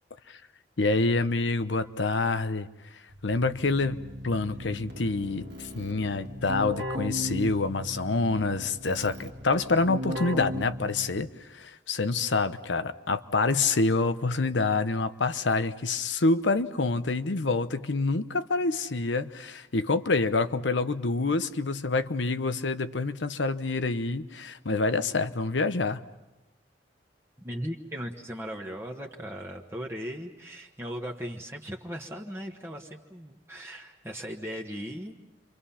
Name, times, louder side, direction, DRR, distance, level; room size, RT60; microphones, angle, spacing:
voice 1, 0.8-2.7 3.2-4.0 4.2-26.0, left 3 dB, 85° left, 11 dB, 0.9 m, -27 dB
Keyboard (musical), 3.1-11.4, left 1 dB, 65° right, 1.6 m, -37 dB
voice 2, 27.4-35.2, equal, 15° right, 1 dB, 1.3 m, -38 dB
30.0 x 25.0 x 5.7 m, 1.0 s
head